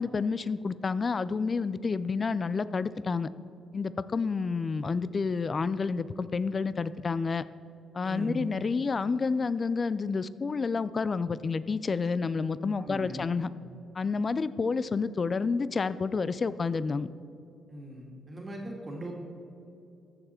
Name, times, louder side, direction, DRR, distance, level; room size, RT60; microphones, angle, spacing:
voice 1, 0.0-3.3 3.7-7.4 7.9-13.5 13.9-17.1, left 4 dB, 35° left, 16 dB, 0.4 m, -29 dB
voice 2, 8.0-8.5 12.8-13.3 17.7-19.1, right 1 dB, 25° right, -1 dB, 2.1 m, -39 dB
14.5 x 6.7 x 4.3 m, 2.8 s
cardioid pair, 90°, 0 cm